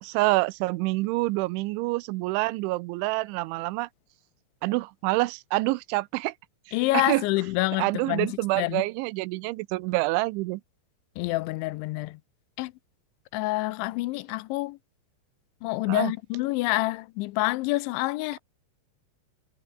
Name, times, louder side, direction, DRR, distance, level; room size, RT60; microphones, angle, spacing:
voice 1, 0.0-3.9 4.6-6.3 6.9-7.2 7.8-10.6 15.9-16.1, right 21 dB, 85° right, 3.1 m, -27 dB
voice 2, 6.7-8.8 11.2-12.2 12.6-12.7 13.3-14.8 15.6-18.4, left 20 dB, 80° left, 3.0 m, -27 dB
omnidirectional pair, 5.4 m